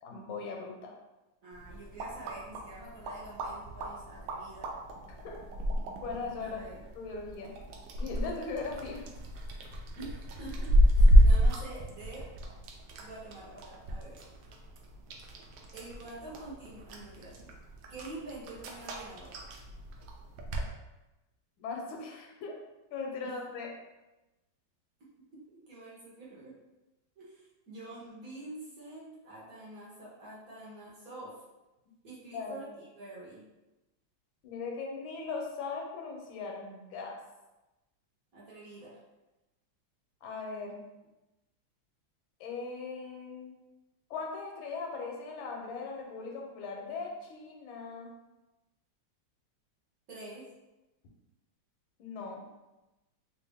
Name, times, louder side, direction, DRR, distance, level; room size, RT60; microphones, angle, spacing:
voice 1, 0.0-0.9 5.1-5.7 6.0-6.6 6.9-7.5 8.0-9.1 21.6-22.5 22.9-23.7 32.3-32.6 34.4-37.2 40.2-40.8 42.4-43.6 44.1-48.1 52.0-52.4, left 4 dB, 80° left, 0 dB, 1.4 m, -39 dB
voice 2, 1.4-4.7 6.4-6.8 10.0-12.3 13.0-14.2 15.7-17.5 17.9-19.3 23.2-23.3 25.0-26.5 27.2-31.4 32.0-33.4 38.3-38.9 50.1-50.4, right 2 dB, 55° right, -8 dB, 1.2 m, -47 dB
sound 1, 1.5-20.7, equal, 75° right, 1.2 m, -30 dB
3.4 x 2.5 x 3.4 m, 1.0 s
omnidirectional pair, 2.1 m